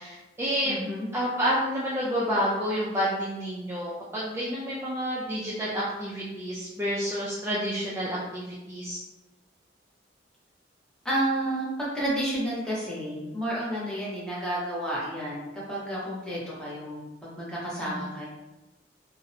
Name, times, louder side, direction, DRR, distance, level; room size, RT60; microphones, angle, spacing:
voice 1, 0.0-0.7 1.1-9.0 17.8-17.9, equal, 15° right, -8 dB, 0.3 m, -29 dB
voice 2, 0.7-1.1 11.0-18.3, right 1 dB, 5° left, -8 dB, 0.7 m, -31 dB
2.7 x 2.0 x 2.4 m, 1.0 s
head